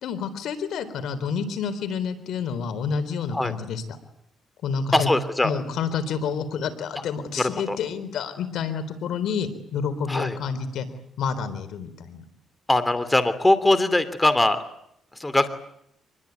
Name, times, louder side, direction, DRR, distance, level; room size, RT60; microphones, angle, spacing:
voice 1, 0.0-3.8 4.6-5.1 5.4-10.9 11.2-12.2, left 6 dB, 75° left, 11 dB, 4.0 m, -29 dB
voice 2, 4.9-5.5 7.4-7.8 10.1-10.4 12.7-14.6 15.2-15.5, left 2 dB, 15° left, 13 dB, 2.8 m, -21 dB
25.0 x 21.5 x 9.6 m, 0.74 s
cardioid pair, 90°, 0 cm